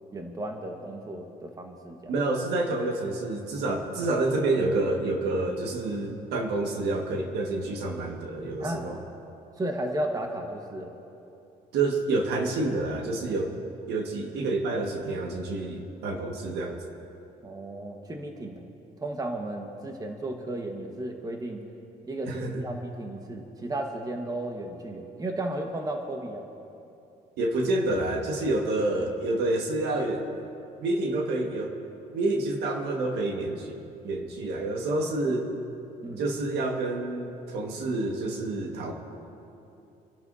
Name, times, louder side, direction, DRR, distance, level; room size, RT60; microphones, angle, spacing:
voice 1, 0.1-2.1 8.6-8.9 9.6-10.9 17.4-18.6 19.0-21.6 22.1-26.5 36.0-36.3, right 1 dB, 20° right, 3 dB, 1.4 m, -34 dB
voice 2, 2.1-9.0 11.7-13.6 13.9-16.8 22.3-22.6 27.4-30.2 30.8-31.8 32.1-33.7 34.0-35.5 36.2-38.9, right 2 dB, 80° right, 2 dB, 1.7 m, -28 dB
29.5 x 11.5 x 2.7 m, 2.8 s
cardioid pair, 110°, 17 cm